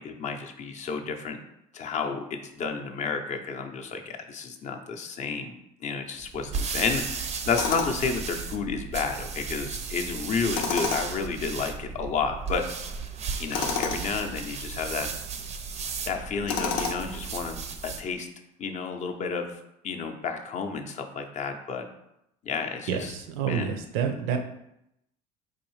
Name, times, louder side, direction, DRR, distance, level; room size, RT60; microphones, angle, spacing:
voice 1, 0.0-1.4 1.7-5.6 5.8-12.6 13.4-15.1 16.1-17.6 17.8-18.3 18.6-21.9 22.4-23.1 23.5-23.7, left 5 dB, 40° left, 5 dB, 0.5 m, -31 dB
sound 1, 6.2-18.1, right 5 dB, 35° right, 0.5 m, -35 dB
Tools, 7.5-8.1 10.5-11.2 13.5-14.0 16.5-17.2, left 5 dB, 85° left, 0.6 m, -29 dB
voice 2, 22.9-24.4, right 7 dB, 80° right, 5 dB, 0.6 m, -28 dB
4.0 x 2.6 x 3.1 m, 0.81 s
supercardioid pair, 100°, 19 cm